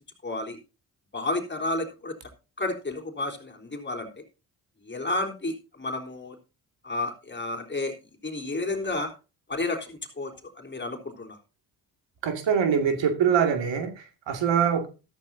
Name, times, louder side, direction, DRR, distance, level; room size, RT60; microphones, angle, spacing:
voice 1, 0.2-0.6 1.1-2.2 2.6-4.1 4.8-6.4 6.8-7.9 8.2-9.1 9.5-10.3 10.6-11.4, left 2 dB, 25° left, 3.9 m, -31 dB
voice 2, 12.2-14.9, right 7 dB, 65° right, 2.3 m, -24 dB
13.5 x 13.0 x 2.7 m
hypercardioid pair, 50°, 47 cm